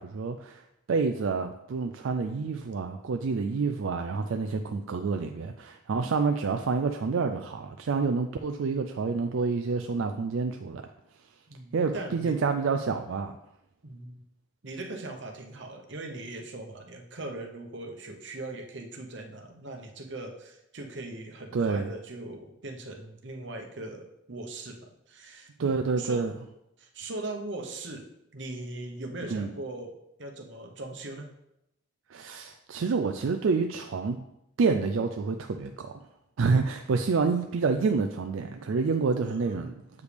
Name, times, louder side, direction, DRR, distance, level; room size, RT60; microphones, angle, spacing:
voice 1, 0.0-10.8 11.7-13.3 21.5-21.9 25.6-26.3 29.3-29.5 32.1-34.2 34.6-36.0 36.4-39.8, right 4 dB, 85° right, 6 dB, 0.4 m, -28 dB
voice 2, 11.5-12.4 13.8-14.2 14.6-26.3 26.8-31.3 36.6-36.8 39.2-39.9, right 2 dB, 65° right, 3 dB, 0.9 m, -40 dB
8.1 x 5.0 x 3.4 m, 0.84 s
head